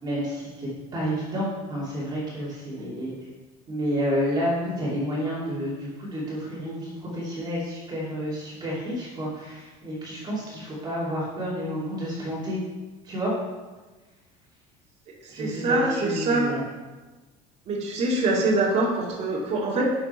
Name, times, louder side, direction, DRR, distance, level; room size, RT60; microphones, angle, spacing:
voice 1, 0.0-3.1 3.7-12.6 13.0-13.3 15.3-16.6, equal, 25° right, -7 dB, 2.9 m, -30 dB
voice 2, 15.3-16.5 17.7-19.8, right 2 dB, 40° right, -5 dB, 2.7 m, -24 dB
11.0 x 6.8 x 4.5 m, 1.3 s
cardioid pair, 150°, 17 cm